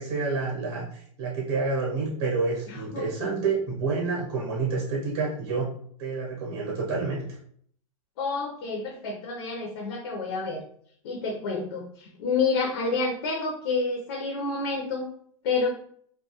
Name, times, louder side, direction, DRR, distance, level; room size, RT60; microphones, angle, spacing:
voice 1, 0.0-5.7 6.0-7.2, right 4 dB, 45° right, -3 dB, 0.7 m, -28 dB
voice 2, 2.7-3.4 8.2-10.6 11.0-15.1 15.4-15.7, left 4 dB, 45° left, 0 dB, 0.5 m, -29 dB
2.7 x 2.2 x 2.8 m, 0.62 s
supercardioid pair, 170°, 18 cm